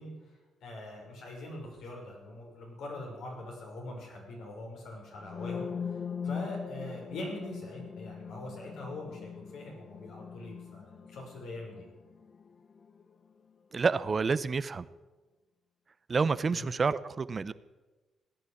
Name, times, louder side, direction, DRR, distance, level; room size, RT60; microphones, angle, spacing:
voice 1, 0.0-11.8 16.5-16.7, left 1 dB, 80° left, -1 dB, 6.0 m, -43 dB
sound 1, 5.2-13.0, left 6 dB, 40° left, 0.6 m, -41 dB
voice 2, 13.7-14.9 16.1-17.5, right 4 dB, 35° right, 15 dB, 0.7 m, -28 dB
16.5 x 10.0 x 8.4 m, 1.2 s
cardioid pair, 90°, 0 cm